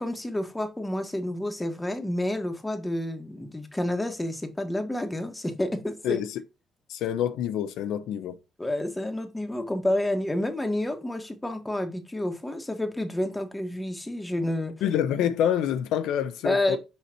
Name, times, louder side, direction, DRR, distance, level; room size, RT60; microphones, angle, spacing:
voice 1, 0.0-6.2 8.6-14.7 16.4-16.8, left 1 dB, 10° left, 1.5 m, -29 dB
voice 2, 6.0-6.4 6.9-8.4 14.8-16.8, left 10 dB, 85° left, 0.7 m, -27 dB
5.7 x 5.7 x 2.9 m
cardioid pair, 115°, 0 cm